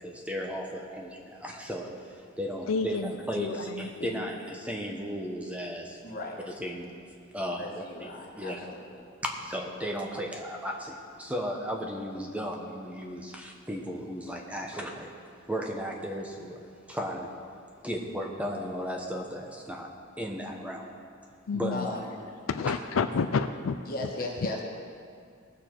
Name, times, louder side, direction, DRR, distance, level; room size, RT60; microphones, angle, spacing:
voice 1, 0.0-6.0 6.5-6.9 7.3-8.7 9.4-15.1 15.5-16.6 16.9-17.3 17.8-19.9 20.2-20.9 21.5-21.9, equal, 5° right, 0 dB, 1.0 m, -35 dB
voice 2, 2.7-4.3 21.5-21.9 22.5-24.1, left 5 dB, 85° left, 9 dB, 0.5 m, -30 dB
voice 3, 6.0-6.4 7.6-8.8 21.7-22.2 23.9-24.6, left 2 dB, 45° left, -1 dB, 1.7 m, -37 dB
19.0 x 6.9 x 4.6 m, 2.2 s
head